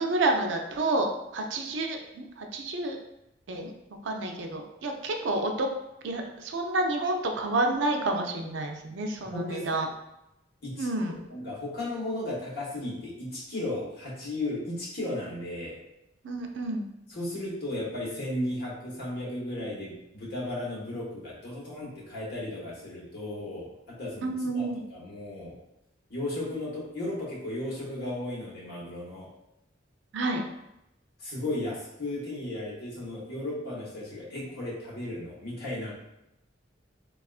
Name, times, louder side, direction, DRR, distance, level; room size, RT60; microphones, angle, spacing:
voice 1, 0.0-3.0 3.5-3.7 4.0-5.7 6.0-9.9 10.8-11.2 16.2-16.8 24.2-24.8 30.1-30.4, right 2 dB, 70° right, 3 dB, 0.4 m, -29 dB
voice 2, 9.2-9.9 10.6-10.9 11.3-15.8 17.1-24.6 24.9-25.6 26.1-29.3 31.2-35.9, left 1 dB, 55° left, -6 dB, 1.1 m, -35 dB
3.5 x 2.3 x 2.3 m, 0.87 s
head